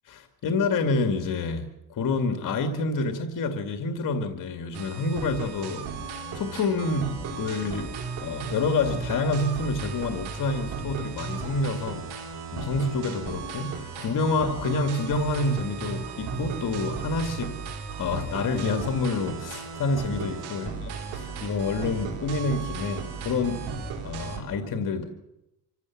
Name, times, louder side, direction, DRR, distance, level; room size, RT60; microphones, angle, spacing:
voice 1, 0.1-17.6 18.0-20.7 21.1-23.7 24.0-25.0, left 3 dB, 55° left, 7 dB, 2.1 m, -28 dB
sound 1, 4.7-24.4, right 5 dB, 85° right, 4.4 m, -35 dB
25.0 x 15.5 x 7.2 m, 0.90 s
cardioid pair, 125°, 38 cm